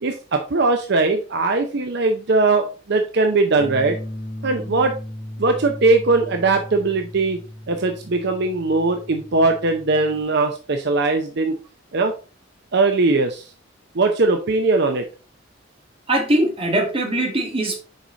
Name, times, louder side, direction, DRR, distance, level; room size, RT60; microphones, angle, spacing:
voice 1, 0.0-4.0 4.4-5.0 5.4-7.4 7.7-11.5 11.9-12.1 12.7-13.5 13.9-15.0, right 3 dB, 60° right, 5 dB, 0.7 m, -20 dB
sound 1, 3.6-10.2, left 1 dB, 60° left, 3.0 m, -36 dB
voice 2, 16.1-17.7, right 1 dB, 30° right, 1 dB, 2.0 m, -21 dB
6.6 x 4.8 x 3.9 m, 0.35 s
head